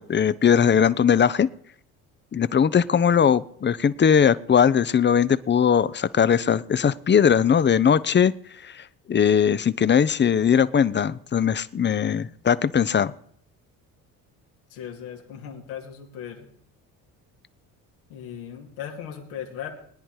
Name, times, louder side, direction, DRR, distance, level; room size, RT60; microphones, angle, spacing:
voice 1, 0.0-1.5 2.3-8.3 8.6-13.1, left 7 dB, 25° left, 17 dB, 0.7 m, -20 dB
voice 2, 14.7-16.5 18.1-19.7, left 9 dB, 85° left, 0 dB, 2.7 m, -37 dB
21.0 x 10.0 x 4.8 m, 0.64 s
hypercardioid pair, 60°, 41 cm